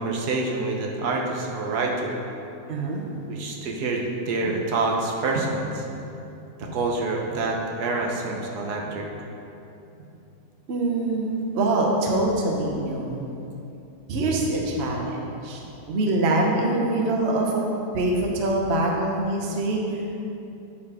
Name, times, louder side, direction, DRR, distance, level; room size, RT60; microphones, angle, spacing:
voice 1, 0.0-2.2 3.3-5.7 6.6-9.1, right 3 dB, 75° right, 0 dB, 1.3 m, -27 dB
voice 2, 2.7-3.2 5.3-5.4 10.7-13.2 14.1-17.6 17.9-20.0, right 2 dB, 45° right, -1 dB, 1.0 m, -24 dB
8.4 x 4.6 x 4.8 m, 2.8 s
omnidirectional pair, 1.7 m